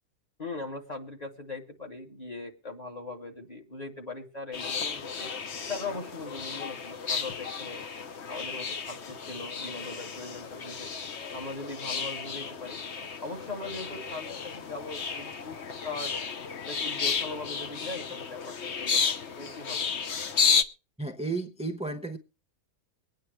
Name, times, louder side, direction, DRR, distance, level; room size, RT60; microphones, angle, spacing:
voice 1, 0.4-5.3 5.7-7.8 8.3-10.9 11.3-12.8 13.2-15.6 15.8-16.1 16.7-19.9, left 3 dB, 25° left, 2.4 m, -40 dB
sound 1, 4.5-20.6, left 6 dB, 50° left, 1.1 m, -32 dB
voice 2, 21.0-22.2, right 3 dB, 5° right, 0.7 m, -33 dB
24.0 x 9.4 x 3.3 m
omnidirectional pair, 1.6 m